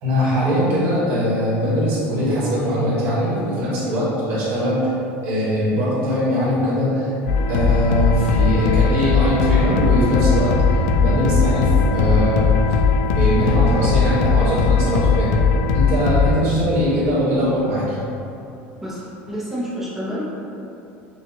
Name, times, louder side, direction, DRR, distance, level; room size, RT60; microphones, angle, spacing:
voice 1, 0.0-4.9 5.2-7.1 7.5-12.8 13.1-15.3 15.7-18.0, equal, 45° right, -9 dB, 1.5 m, -21 dB
sound 1, 7.3-16.3, left 5 dB, 55° left, 0.3 m, -18 dB
voice 2, 18.8-20.2, equal, 5° right, -8 dB, 0.7 m, -29 dB
6.0 x 2.4 x 2.9 m, 2.7 s
cardioid pair, 175°, 5 cm